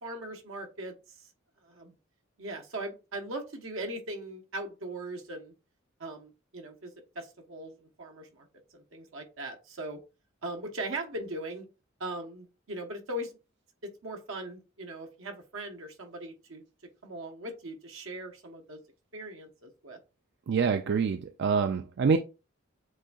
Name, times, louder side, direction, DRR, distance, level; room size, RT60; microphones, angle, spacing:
voice 1, 0.0-1.3 1.6-2.0 2.4-5.5 6.0-8.5 8.7-10.0 10.4-11.6 12.0-13.4 13.8-16.6 17.0-18.8 19.1-20.0, right 1 dB, 85° right, 1.1 m, -39 dB
voice 2, 20.5-22.2, right 5 dB, 60° right, 0.4 m, -26 dB
7.7 x 2.6 x 2.4 m
head